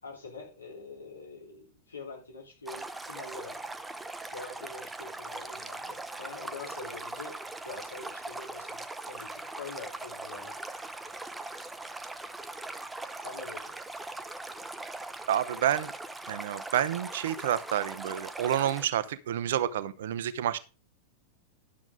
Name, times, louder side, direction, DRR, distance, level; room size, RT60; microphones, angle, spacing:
voice 1, 0.0-3.6 4.3-7.4 7.6-10.6 13.2-13.7, left 3 dB, 80° left, -1 dB, 3.8 m, -45 dB
Stream, 2.6-18.9, right 2 dB, 10° right, 0.8 m, -40 dB
voice 2, 15.3-15.9 16.3-20.6, right 11 dB, 60° right, 14 dB, 0.8 m, -29 dB
11.5 x 7.2 x 3.8 m, 0.31 s
figure-of-eight pair, 90°, 0 cm